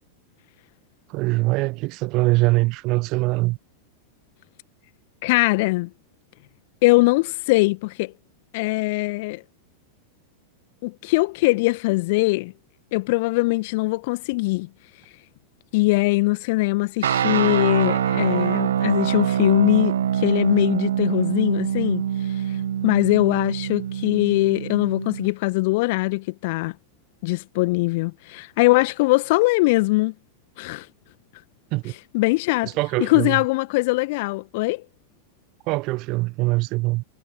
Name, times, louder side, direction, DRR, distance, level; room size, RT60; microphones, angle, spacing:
voice 1, 1.1-3.6 31.7-31.9 32.6-33.4 35.7-37.0, right 23 dB, 40° right, 1.2 m, -23 dB
voice 2, 5.2-5.9 6.8-8.1 8.5-9.4 10.8-12.5 12.9-14.7 15.7-22.0 22.5-26.7 27.2-30.1 30.6-30.9 32.1-32.7 33.0-34.8, left 23 dB, 50° left, 1.8 m, -21 dB
sound 1, 17.0-25.3, right 9 dB, 65° right, 1.8 m, -24 dB
figure-of-eight pair, 90°, 0 cm